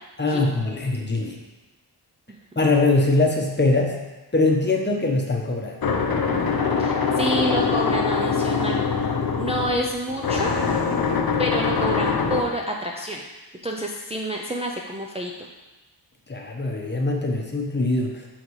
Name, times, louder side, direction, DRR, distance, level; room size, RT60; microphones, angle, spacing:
voice 1, 0.2-1.4 2.6-3.9 4.3-5.8 16.3-18.3, left 2 dB, 25° left, 0 dB, 0.9 m, -22 dB
sound 1, 5.8-12.4, left 5 dB, 60° left, 0.7 m, -23 dB
voice 2, 6.8-8.8 9.4-10.6 11.4-13.2 13.6-15.5, right 1 dB, 15° right, -1 dB, 0.4 m, -28 dB
7.0 x 3.7 x 4.7 m, 1.1 s
wide cardioid pair, 120°, 42 cm